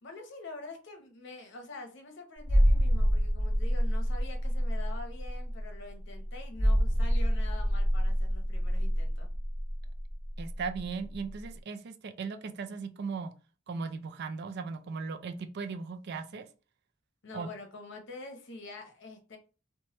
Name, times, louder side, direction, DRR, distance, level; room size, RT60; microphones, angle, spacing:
voice 1, 0.0-9.3 17.2-19.4, left 3 dB, 65° left, 4 dB, 0.7 m, -46 dB
sound 1, 2.4-10.9 11.1-11.3, equal, 35° right, 1.1 m, -27 dB
voice 2, 10.4-13.3 13.7-16.5 17.3-17.5, right 5 dB, 55° right, 8 dB, 0.4 m, -37 dB
3.0 x 2.2 x 2.9 m, 0.34 s
head